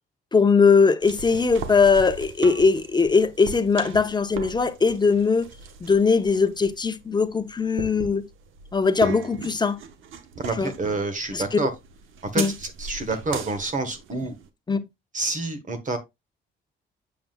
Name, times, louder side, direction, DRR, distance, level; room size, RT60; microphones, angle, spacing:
voice 1, 0.3-5.5 5.8-8.2 8.7-9.8 10.6-10.7 11.3-11.4 12.4-12.5 14.7-14.8, left 5 dB, 20° left, 0.8 m, -20 dB
sound 1, 1.0-14.5, right 6 dB, 80° right, 1.0 m, -38 dB
voice 2, 10.4-11.7 12.2-14.3 15.1-16.0, right 3 dB, 40° right, 1.2 m, -28 dB
7.6 x 7.0 x 2.3 m
cardioid pair, 90°, 20 cm